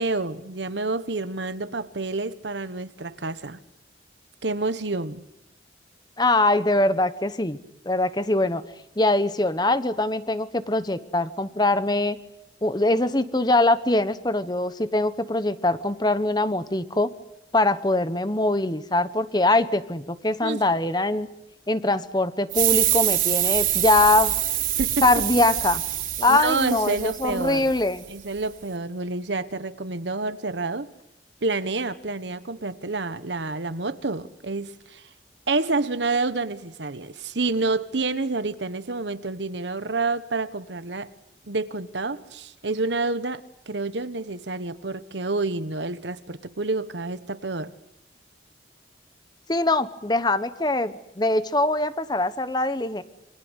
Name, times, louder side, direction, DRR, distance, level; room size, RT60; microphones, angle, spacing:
voice 1, 0.0-3.6 4.4-5.2 20.4-20.6 24.8-25.2 26.3-27.7 28.1-30.9 31.4-35.0 35.5-41.1 41.5-47.7, right 3 dB, 80° right, 1.3 m, -28 dB
voice 2, 6.2-7.6 7.8-8.6 9.0-12.2 12.6-17.1 17.5-21.3 21.7-24.3 25.0-25.8 26.2-28.0 49.5-53.0, left 2 dB, 25° left, 1.1 m, -22 dB
sound 1, 22.5-27.8, right 12 dB, 50° right, 3.6 m, -25 dB
28.0 x 25.5 x 8.2 m
head